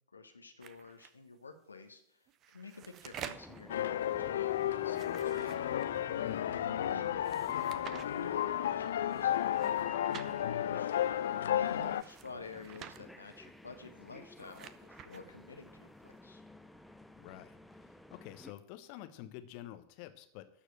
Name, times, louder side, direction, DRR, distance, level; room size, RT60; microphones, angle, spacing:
voice 1, 0.1-5.6 6.4-7.4 7.8-16.4, left 3 dB, 75° left, 6 dB, 1.2 m, -50 dB
sound 1, 0.6-1.1 2.3-3.6 4.8-6.1 7.3-8.1 9.5-10.3 11.8-13.0 14.1-15.2, right 9 dB, 30° right, 0.8 m, -49 dB
sound 2, 3.3-18.5, left 1 dB, 5° left, 0.7 m, -54 dB
sound 3, 3.7-12.0, left 11 dB, 60° left, 0.4 m, -33 dB
voice 2, 17.2-17.6 18.1-20.5, left 13 dB, 45° left, 10 dB, 1.1 m, -48 dB
12.5 x 4.9 x 7.7 m, 0.71 s
figure-of-eight pair, 90°, 0 cm